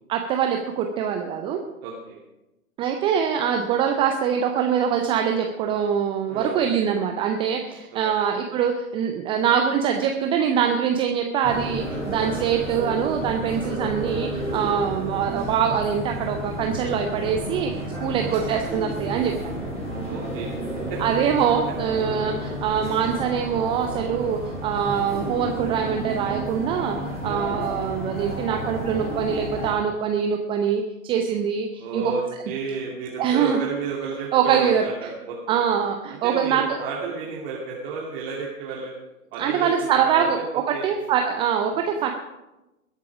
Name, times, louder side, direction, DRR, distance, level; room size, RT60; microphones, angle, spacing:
voice 1, 0.1-1.6 2.8-17.7 18.0-19.5 21.0-27.0 27.2-32.1 33.2-33.6 34.3-34.8 35.5-36.8 39.4-42.1, right 8 dB, 10° right, 4 dB, 0.5 m, -24 dB
voice 2, 1.8-2.2 6.3-6.6 7.9-8.3 14.6-14.7 18.0-18.3 20.0-20.5 20.9-21.0 27.2-27.6 31.8-35.6 36.2-38.9 39.3-40.4 40.7-40.9 41.7-41.9, right 4 dB, 40° right, -4 dB, 2.8 m, -32 dB
sound 1, 11.4-29.7, right 1 dB, 15° left, 5.8 m, -31 dB
20.5 x 8.3 x 4.9 m, 0.98 s
figure-of-eight pair, 105°, 43 cm